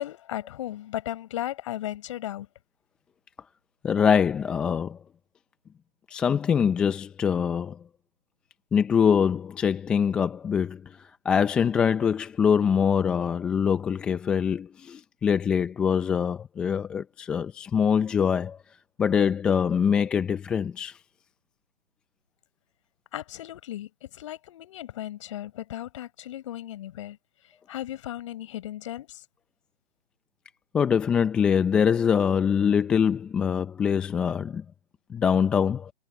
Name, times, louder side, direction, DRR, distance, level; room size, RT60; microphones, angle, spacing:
voice 1, 0.0-2.5 23.1-27.2 27.7-29.2, left 13 dB, 25° left, 6.6 m, -36 dB
voice 2, 3.8-5.0 6.1-7.8 8.7-11.0 11.2-18.6 19.0-21.0 30.7-34.6 35.1-35.9, left 7 dB, 5° left, 0.8 m, -24 dB
figure-of-eight pair, 150°, 35 cm